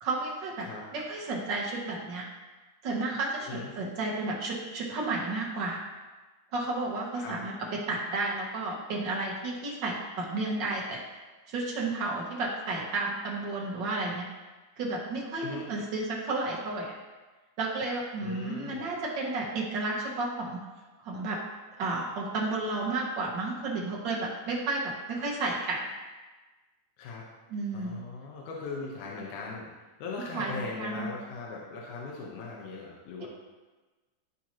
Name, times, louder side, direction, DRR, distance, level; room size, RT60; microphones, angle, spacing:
voice 1, 0.0-2.3 2.8-5.8 6.5-11.0 11.5-14.3 14.8-16.9 17.6-20.6 21.0-21.4 21.8-25.8 27.5-28.0 30.3-31.1, right 2 dB, 70° right, -3 dB, 1.0 m, -32 dB
voice 2, 18.2-18.8 27.0-27.2 27.7-29.7 30.0-33.3, left 4 dB, 75° left, -3 dB, 2.3 m, -39 dB
12.0 x 4.4 x 2.9 m, 1.2 s
omnidirectional pair, 3.7 m